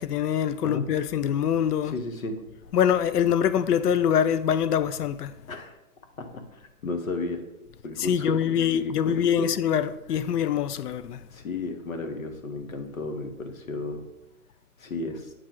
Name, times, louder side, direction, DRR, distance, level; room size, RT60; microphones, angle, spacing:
voice 1, 0.0-2.0 2.7-5.3 8.0-11.2, left 9 dB, 85° left, 0.6 m, -24 dB
voice 2, 1.9-2.4 5.5-5.8 6.2-7.4 7.8-9.5 11.3-14.1 14.8-15.3, left 2 dB, 60° left, 1.0 m, -33 dB
8.7 x 3.3 x 3.8 m
hypercardioid pair, 180°, 45 cm